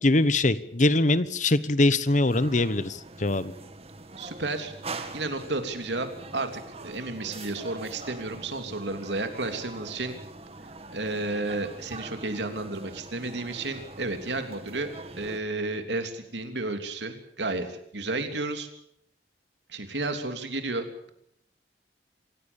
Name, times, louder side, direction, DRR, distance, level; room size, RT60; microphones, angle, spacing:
voice 1, 0.0-3.5, left 2 dB, 45° left, 15 dB, 1.0 m, -23 dB
sound 1, 2.2-15.4, right 2 dB, 35° right, 2.2 m, -43 dB
voice 2, 4.2-4.7 5.1-6.1 6.3-10.1 10.9-14.9 15.2-18.7 19.7-20.8, right 2 dB, 90° right, 6 dB, 3.2 m, -32 dB
26.5 x 16.5 x 7.1 m, 0.72 s
head